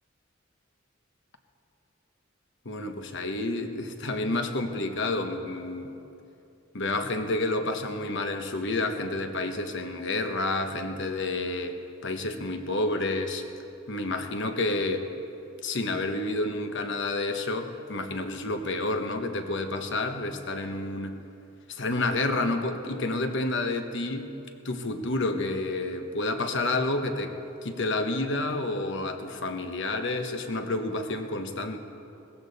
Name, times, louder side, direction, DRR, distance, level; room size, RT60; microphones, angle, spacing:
voice 1, 2.6-5.9 6.7-13.4 13.9-15.1 15.6-21.1 21.7-24.3 24.6-31.8, left 2 dB, 60° left, 6 dB, 1.1 m, -29 dB
18.0 x 15.0 x 4.1 m, 2.7 s
head